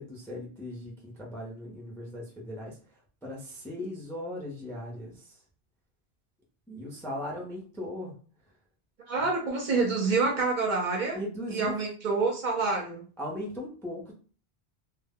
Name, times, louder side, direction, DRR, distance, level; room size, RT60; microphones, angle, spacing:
voice 1, 0.0-2.8 3.2-5.4 6.7-8.1 9.2-9.3 11.1-11.8 13.2-14.1, left 1 dB, 5° left, -1 dB, 0.4 m, -38 dB
voice 2, 9.1-11.2 11.5-13.0, right 4 dB, 55° right, 1 dB, 0.6 m, -27 dB
2.1 x 2.0 x 3.4 m, 0.39 s
omnidirectional pair, 1.1 m